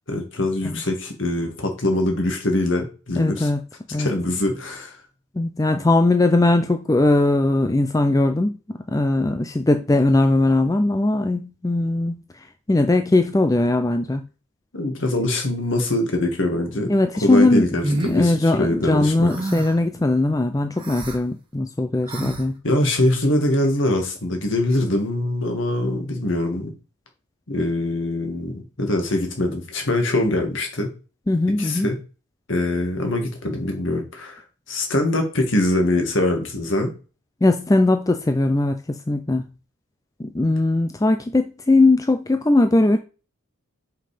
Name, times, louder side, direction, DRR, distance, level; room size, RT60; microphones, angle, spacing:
voice 1, 0.1-3.5 4.0-5.0 14.7-16.9 17.2-19.3 22.6-26.7 27.5-30.9 31.6-32.0 32.5-34.4 34.7-36.9, left 1 dB, 60° left, 2.0 m, -23 dB
voice 2, 3.2-3.6 3.9-4.1 5.4-12.2 12.7-14.2 16.9-22.6 31.3-31.9 37.4-39.4 40.2-43.0, left 2 dB, 15° left, 0.4 m, -20 dB
sound 1, 17.8-18.2 19.3-19.8 20.8-21.2 22.1-22.4, right 1 dB, 25° right, 1.5 m, -27 dB
5.6 x 5.5 x 5.0 m
head